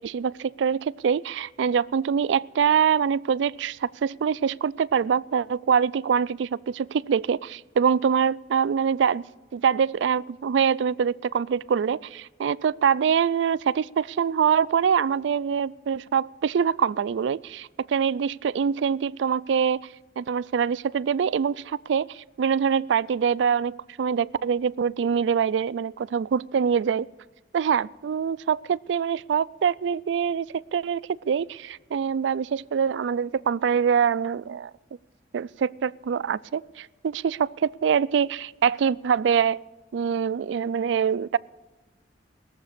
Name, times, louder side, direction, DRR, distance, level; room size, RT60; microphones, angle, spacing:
voice 1, 0.0-9.2 9.5-19.8 20.2-27.1 27.5-31.0 31.3-34.7 35.3-39.6 39.9-41.4, right 7 dB, 90° right, 20 dB, 0.3 m, -24 dB
20.0 x 7.2 x 6.7 m, 1.1 s
head